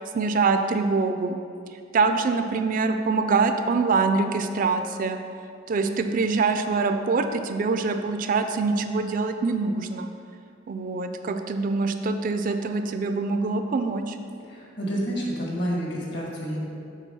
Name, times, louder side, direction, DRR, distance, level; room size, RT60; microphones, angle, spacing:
voice 1, 0.1-1.4 1.9-5.2 5.7-10.1 10.7-14.2, right 4 dB, 45° right, 7 dB, 0.4 m, -24 dB
voice 2, 14.5-16.7, equal, 60° left, -3 dB, 1.6 m, -29 dB
7.3 x 3.7 x 5.5 m, 2.4 s
head